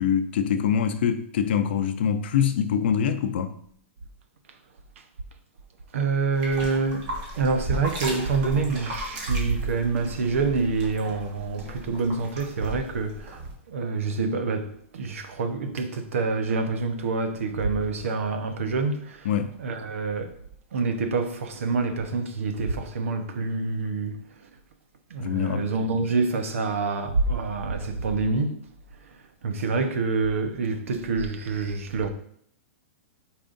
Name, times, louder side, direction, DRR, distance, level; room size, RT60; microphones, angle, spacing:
voice 1, 0.0-3.6 19.3-19.5 25.2-25.6, left 8 dB, 55° left, 0.6 m, -24 dB
voice 2, 5.9-13.4 13.7-19.3 19.6-20.4 20.7-24.5 25.1-28.7 29.0-32.1, right 4 dB, 80° right, 1.0 m, -27 dB
sound 1, 6.3-13.5, right 1 dB, 30° right, 1.6 m, -36 dB
8.8 x 4.8 x 2.6 m
supercardioid pair, 170°, 7 cm